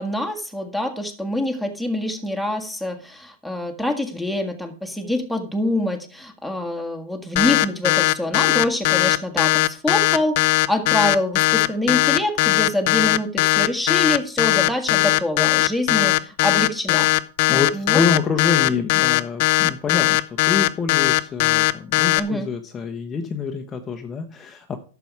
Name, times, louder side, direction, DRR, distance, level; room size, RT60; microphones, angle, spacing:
voice 1, 0.0-17.1 17.4-18.2 22.1-22.5, left 1 dB, ahead, 6 dB, 1.6 m, -25 dB
sound 1, 7.4-22.2, left 18 dB, 55° left, 0.6 m, -18 dB
voice 2, 17.5-24.8, left 5 dB, 20° left, 4 dB, 1.0 m, -26 dB
11.5 x 7.0 x 4.7 m, 0.38 s
hypercardioid pair, 135°, 0 cm